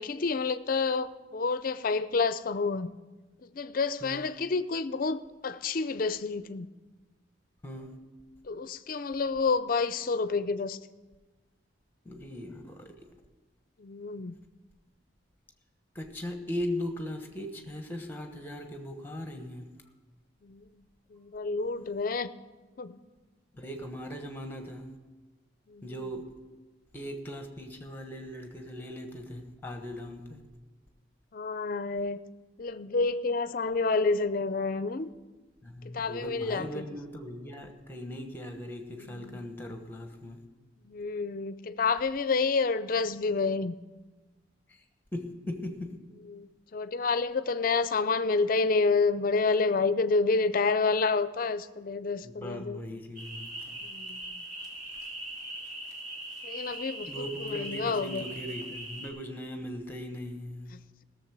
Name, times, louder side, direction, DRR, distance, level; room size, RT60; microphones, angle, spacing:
voice 1, 0.0-2.9 3.4-6.7 8.4-10.8 13.8-14.3 20.4-20.6 21.1-22.3 22.8-23.0 25.7-25.9 31.3-32.2 32.6-35.1 35.8-36.8 39.0-39.4 40.8-43.7 46.3-52.8 53.8-54.4 56.4-58.2 60.7-61.0, left 4 dB, 45° left, 0.4 m, -29 dB
voice 2, 7.6-8.0 12.0-13.1 15.9-19.7 23.5-25.0 25.8-26.2 26.9-30.4 35.6-40.4 44.7-44.8 45.1-46.0 52.2-53.8 57.1-60.8, left 1 dB, 10° left, 1.1 m, -39 dB
sound 1, 53.2-59.1, right 1 dB, 40° right, 2.2 m, -40 dB
16.5 x 7.1 x 6.0 m
head